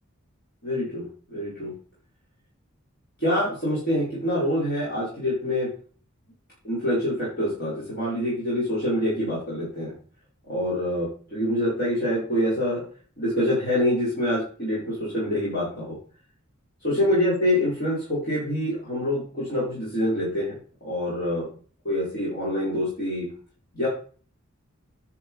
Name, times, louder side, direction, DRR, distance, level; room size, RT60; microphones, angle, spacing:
voice 1, 0.6-1.7 3.2-5.7 6.6-9.9 10.5-12.8 13.2-16.0 16.8-21.5 21.8-23.3 23.7-23.9, left 1 dB, 50° left, -9 dB, 5.4 m, -26 dB
10.5 x 6.2 x 5.6 m, 0.42 s
head